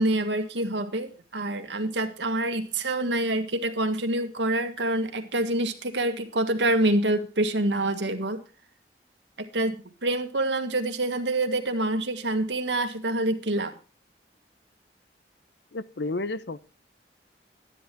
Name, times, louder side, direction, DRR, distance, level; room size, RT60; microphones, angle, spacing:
voice 1, 0.0-8.4 9.4-13.7, right 1 dB, 90° right, 1.8 m, -26 dB
voice 2, 15.7-16.6, left 2 dB, 75° left, 0.7 m, -31 dB
13.0 x 10.0 x 4.5 m
head